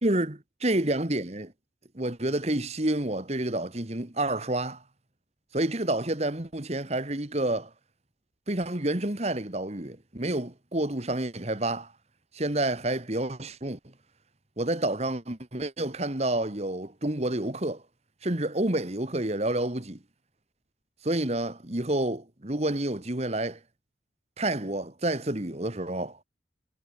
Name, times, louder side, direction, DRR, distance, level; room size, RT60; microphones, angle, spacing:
voice 1, 0.0-1.5 1.9-4.8 5.5-7.7 8.5-11.9 12.3-13.8 14.6-17.8 18.2-20.0 21.0-23.6 24.4-26.2, right 1 dB, 35° right, 1.8 m, -29 dB
head